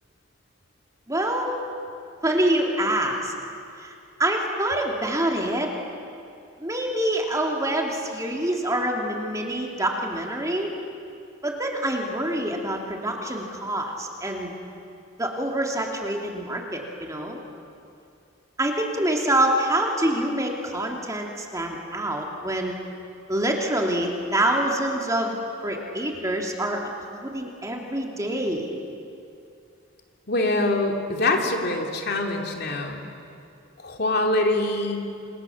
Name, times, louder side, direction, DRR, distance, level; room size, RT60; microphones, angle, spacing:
voice 1, 1.1-1.6 2.2-3.3 3.8-3.9 4.2-5.7 6.6-10.7 11.4-14.5 15.2-17.4 18.6-22.8 23.3-25.4 25.6-26.8 27.1-28.7, right 1 dB, 15° right, 1 dB, 2.9 m, -26 dB
voice 2, 30.3-33.0 33.8-35.1, left 2 dB, 50° left, 2 dB, 3.0 m, -24 dB
29.5 x 26.5 x 7.3 m, 2.5 s
head